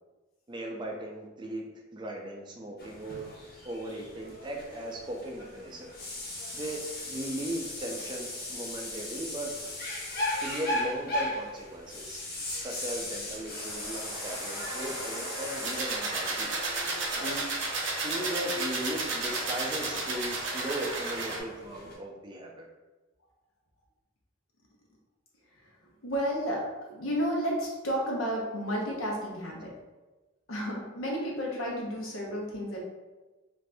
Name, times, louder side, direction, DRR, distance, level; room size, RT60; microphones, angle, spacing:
voice 1, 0.5-1.6 1.9-3.3 3.6-5.9 6.5-9.7 10.4-16.5 17.2-17.4 18.0-22.7, right 1 dB, 25° right, 1 dB, 0.4 m, -37 dB
sound 1, 2.8-21.9, left 1 dB, 50° left, 0.8 m, -38 dB
sound 2, 13.5-21.4, right 3 dB, 60° right, 0.7 m, -33 dB
voice 2, 25.6-29.7 30.5-32.8, equal, 85° left, -2 dB, 0.9 m, -32 dB
2.6 x 2.5 x 3.3 m, 1.2 s
head